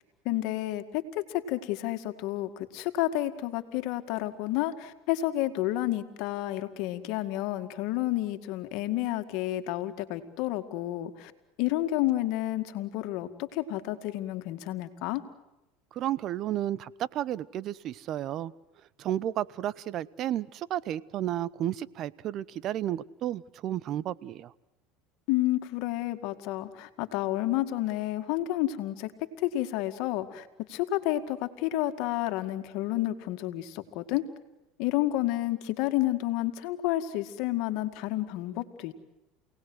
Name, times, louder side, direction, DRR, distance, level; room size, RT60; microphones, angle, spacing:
voice 1, 0.3-11.3 11.6-15.2 25.3-29.1 29.4-34.2 34.8-38.9, left 15 dB, 65° left, 8 dB, 2.0 m, -30 dB
voice 2, 15.9-18.5 19.0-24.5, right 12 dB, 50° right, 21 dB, 0.8 m, -32 dB
28.5 x 18.5 x 7.9 m, 0.98 s
supercardioid pair, 105°, 0 cm